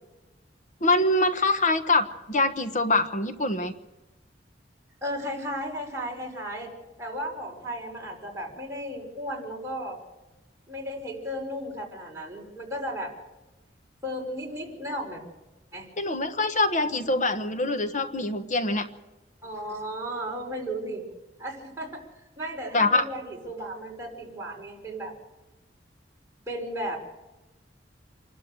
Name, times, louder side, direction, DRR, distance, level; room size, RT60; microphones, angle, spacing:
voice 1, 0.8-3.7 16.0-18.9 22.7-23.0, left 2 dB, 40° left, 8 dB, 1.2 m, -24 dB
voice 2, 5.0-6.7 7.0-10.0 10.7-13.1 14.0-15.2 15.7-15.9 19.4-21.0 21.4-22.1 22.4-25.1 26.5-27.0, equal, 15° right, -2 dB, 5.4 m, -34 dB
27.0 x 12.5 x 7.8 m, 1.1 s
head